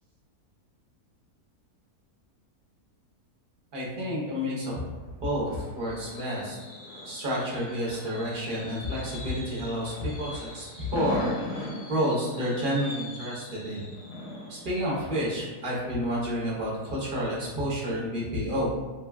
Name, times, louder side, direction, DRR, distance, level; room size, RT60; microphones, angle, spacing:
voice 1, 3.7-4.8 5.2-6.5 7.0-13.9 14.5-18.7, equal, 45° right, -5 dB, 0.7 m, -30 dB
Fireworks, 4.8-16.5 16.9-17.2 17.4-17.5, left 1 dB, 80° left, 1.4 m, -40 dB
3.6 x 2.3 x 2.2 m, 1.2 s
omnidirectional pair, 1.6 m